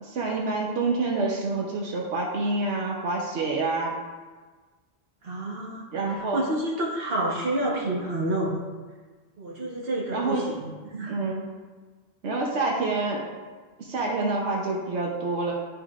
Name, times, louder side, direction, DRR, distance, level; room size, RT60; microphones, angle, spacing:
voice 1, 0.0-3.9 5.9-6.4 10.1-10.4 11.1-11.4 12.2-13.2 13.8-15.5, right 3 dB, 90° right, -2 dB, 1.2 m, -27 dB
voice 2, 5.2-8.6 9.4-11.1, right 1 dB, 60° right, -3 dB, 1.4 m, -29 dB
11.0 x 5.0 x 2.4 m, 1.4 s
omnidirectional pair, 1.1 m